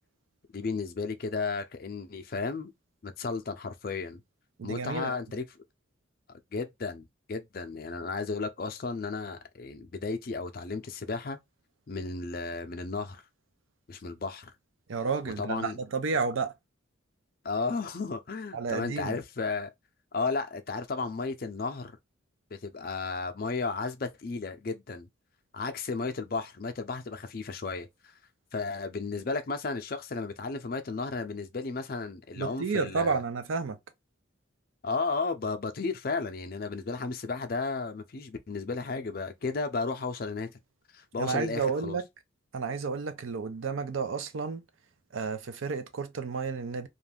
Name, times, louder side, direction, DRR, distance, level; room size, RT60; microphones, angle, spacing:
voice 1, 0.5-2.7 3.0-4.2 4.6-5.4 6.5-11.4 11.9-13.2 13.9-14.5 15.4-15.8 17.4-19.7 20.1-21.9 22.5-25.1 25.5-27.9 28.5-33.2 34.8-40.5 40.9-42.0, left 4 dB, 45° left, 0.5 m, -33 dB
voice 2, 4.6-5.2 14.9-16.5 18.5-19.2 32.4-33.8 41.2-42.0 42.5-44.6 45.1-46.9, right 5 dB, 90° right, 0.5 m, -31 dB
2.5 x 2.3 x 3.3 m
head